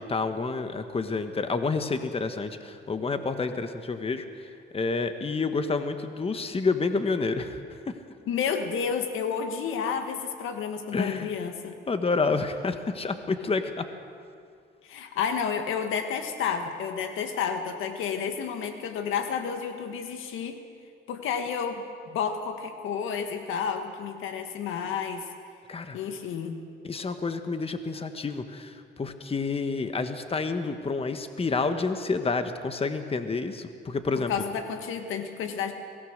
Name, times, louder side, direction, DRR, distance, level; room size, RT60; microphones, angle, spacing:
voice 1, 0.0-7.6 7.9-8.0 10.9-11.3 11.9-13.9 25.7-26.0 26.8-34.3, left 4 dB, 30° left, 8 dB, 1.4 m, -29 dB
voice 2, 8.3-11.8 14.8-20.6 21.1-25.3 25.9-26.6 34.2-35.7, left 7 dB, 90° left, 7 dB, 1.7 m, -31 dB
23.0 x 17.5 x 6.6 m, 2.2 s
cardioid pair, 90°, 20 cm